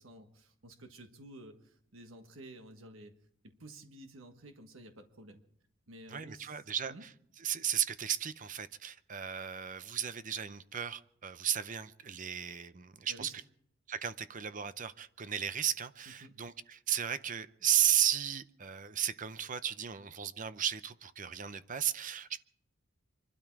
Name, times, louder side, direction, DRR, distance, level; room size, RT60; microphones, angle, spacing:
voice 1, 0.0-3.2 3.4-5.4 5.9-6.6 6.9-7.0 13.1-13.3 16.2-16.3, right 1 dB, 65° right, 6 dB, 1.4 m, -52 dB
voice 2, 6.1-7.1 7.4-13.3 13.9-22.4, right 9 dB, 35° right, 13 dB, 0.6 m, -34 dB
24.5 x 12.5 x 4.7 m, 0.70 s
head